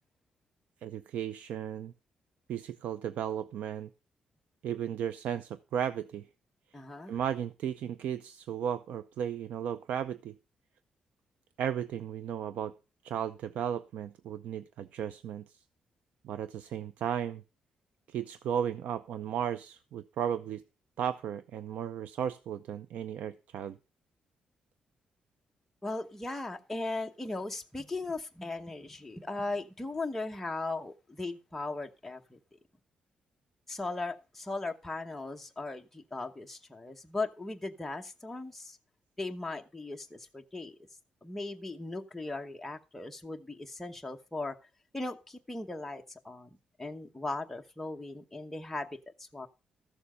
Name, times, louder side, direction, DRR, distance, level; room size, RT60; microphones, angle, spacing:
voice 1, 0.8-1.9 2.5-3.9 4.6-6.3 7.1-10.3 11.6-12.7 13.0-15.5 16.2-17.4 18.1-20.6 21.0-23.8, right 9 dB, 85° right, 0.6 m, -35 dB
voice 2, 6.7-7.2 25.8-32.4 33.7-38.8 39.2-40.8 41.2-44.6 44.9-46.5 46.8-49.5, left 2 dB, 10° left, 1.0 m, -38 dB
14.0 x 7.1 x 5.0 m
wide cardioid pair, 165°, 2 cm